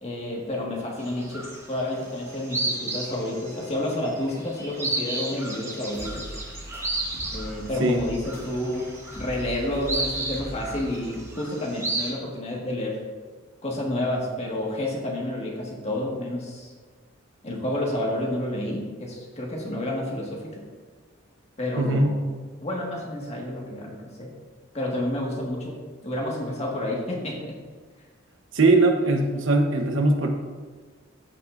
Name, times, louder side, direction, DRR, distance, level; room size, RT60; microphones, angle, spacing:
voice 1, 0.0-6.4 7.3-8.9 9.2-13.0 13.6-16.7 17.4-20.6 21.6-22.2 22.6-24.3 24.7-25.8 26.0-27.5, left 1 dB, 35° left, -2 dB, 1.7 m, -30 dB
sound 1, 1.0-11.2, equal, 10° left, 2.6 m, -42 dB
sound 2, 1.0-1.9 2.2-12.1, right 2 dB, 15° right, 1.2 m, -33 dB
voice 2, 21.7-22.1 28.5-30.3, right 2 dB, 65° right, 4 dB, 1.0 m, -20 dB
14.5 x 5.8 x 2.6 m, 1.5 s
head